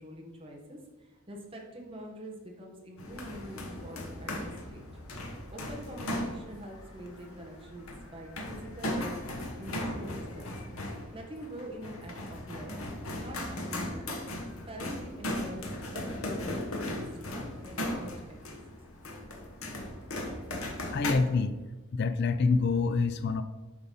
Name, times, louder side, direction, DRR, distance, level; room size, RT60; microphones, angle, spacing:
voice 1, 0.0-4.8 5.5-10.5 11.1-12.8 13.1-14.3 14.7-18.6, equal, 25° right, -1 dB, 1.3 m, -45 dB
sound 1, 3.0-21.1, left 1 dB, 80° left, 1.3 m, -37 dB
voice 2, 20.9-21.5 21.9-23.4, left 4 dB, 50° left, 11 dB, 0.4 m, -26 dB
8.0 x 4.1 x 5.4 m, 1.2 s
head